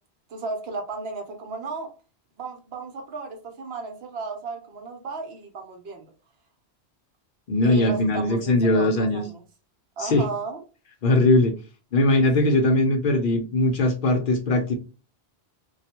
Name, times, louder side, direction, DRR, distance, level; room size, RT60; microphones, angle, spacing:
voice 1, 0.3-1.9 2.4-6.1 7.6-9.4 10.0-10.6 12.4-12.7, right 3 dB, 70° right, 0.9 m, -34 dB
voice 2, 7.5-9.2 10.0-10.2 11.0-11.5 11.9-14.8, left 2 dB, 60° left, 0.6 m, -20 dB
2.3 x 2.2 x 2.8 m
omnidirectional pair, 1.1 m